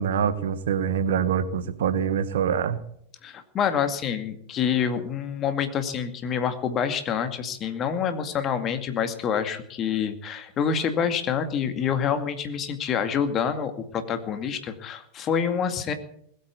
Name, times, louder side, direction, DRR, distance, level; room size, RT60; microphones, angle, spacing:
voice 1, 0.0-2.8, right 7 dB, 60° right, 13 dB, 1.2 m, -25 dB
voice 2, 3.2-15.9, left 7 dB, 30° left, 8 dB, 2.2 m, -27 dB
20.5 x 8.6 x 8.3 m, 0.69 s
figure-of-eight pair, 90°, 0 cm